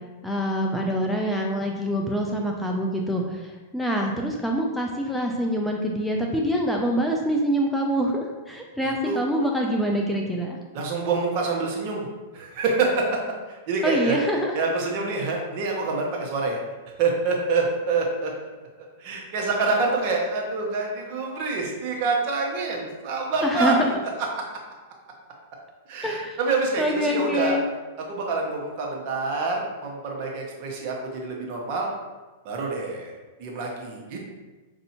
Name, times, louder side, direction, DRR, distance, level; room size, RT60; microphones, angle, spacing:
voice 1, 0.2-10.6 13.8-14.5 23.4-23.8 26.0-26.3 26.8-27.6, equal, 5° left, 0 dB, 0.4 m, -25 dB
voice 2, 8.8-9.2 10.7-12.1 12.3-13.2 13.5-14.2 14.5-16.6 16.9-23.9 25.9-27.6 28.0-31.9 32.4-33.1 33.4-34.3, right 3 dB, 50° right, 0 dB, 1.0 m, -26 dB
5.2 x 2.6 x 2.8 m, 1.2 s
hypercardioid pair, 125°, 0 cm